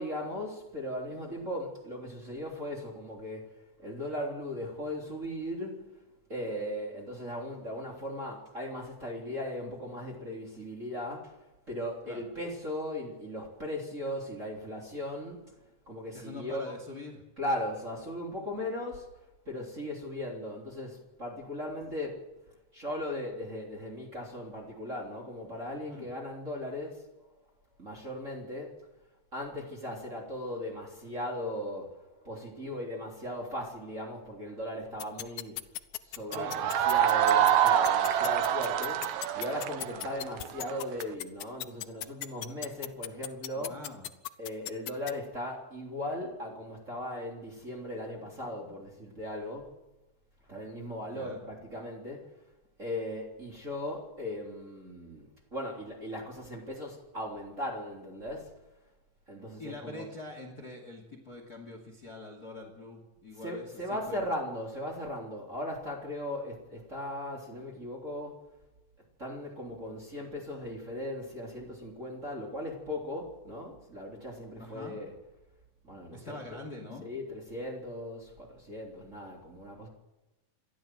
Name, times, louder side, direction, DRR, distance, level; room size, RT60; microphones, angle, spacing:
voice 1, 0.0-6.0 6.3-15.4 15.8-16.7 17.4-22.3 22.7-27.3 27.8-28.7 29.3-35.6 36.0-43.8 44.4-49.8 50.5-52.3 52.8-58.5 59.3-60.1 63.3-68.4 69.2-75.2 75.8-76.6 77.0-79.9, left 1 dB, 20° right, -2 dB, 3.4 m, -38 dB
voice 2, 16.1-17.2 25.9-26.1 36.3-36.7 39.8-40.0 43.6-44.1 51.1-51.4 59.6-63.7 64.1-64.2 74.6-75.0 76.1-77.0, left 2 dB, 25° left, 4 dB, 2.8 m, -44 dB
sound 1, 35.0-45.1, left 14 dB, 75° left, 2.3 m, -36 dB
sound 2, 36.3-41.1, right 10 dB, 75° right, 2.9 m, -26 dB
28.5 x 12.5 x 7.7 m, 1.0 s
omnidirectional pair, 4.4 m